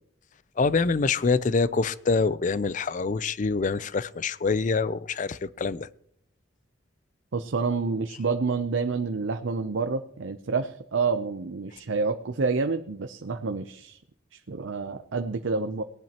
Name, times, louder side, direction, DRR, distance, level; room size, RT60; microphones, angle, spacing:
voice 1, 0.6-5.9, left 4 dB, 40° left, 18 dB, 0.4 m, -25 dB
voice 2, 7.3-14.0 14.3-15.8, right 4 dB, 80° right, 7 dB, 0.6 m, -28 dB
18.5 x 10.5 x 2.9 m, 0.70 s
head